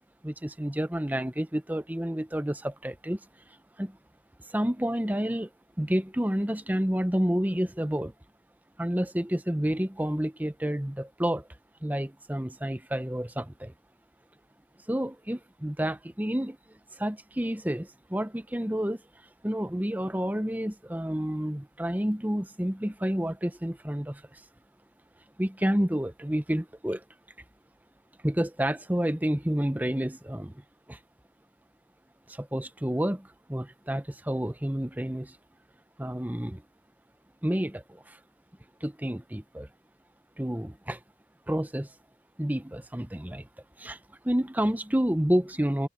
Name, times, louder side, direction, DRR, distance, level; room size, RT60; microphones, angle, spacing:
voice 1, 0.2-3.2 3.8-4.0 4.5-5.5 5.8-8.1 8.8-11.4 11.8-13.7 14.9-16.6 17.0-19.0 19.4-24.4 25.4-27.0 28.2-30.6 30.9-31.0 32.3-35.4 36.0-36.6 37.4-38.2 38.8-39.7 40.4-41.0 41.5-41.9 42.4-43.5 43.8-44.0 44.2-45.9, equal, 10° right, 0.8 m, -29 dB
head